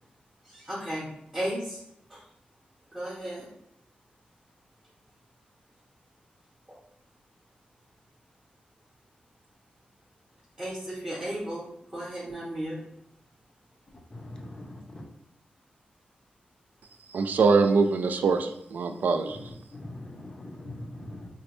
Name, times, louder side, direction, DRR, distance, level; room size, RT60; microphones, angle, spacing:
voice 1, 0.4-1.8 2.1-2.3 2.9-3.5 6.7-6.8 10.6-12.8, right 1 dB, 15° right, -6 dB, 0.8 m, -35 dB
voice 2, 14.1-15.0 19.3-21.3, left 1 dB, 30° left, 1 dB, 0.5 m, -42 dB
voice 3, 17.1-19.5, right 4 dB, 75° right, 8 dB, 0.3 m, -23 dB
3.9 x 2.2 x 3.0 m, 0.79 s
wide cardioid pair, 120°, 3 cm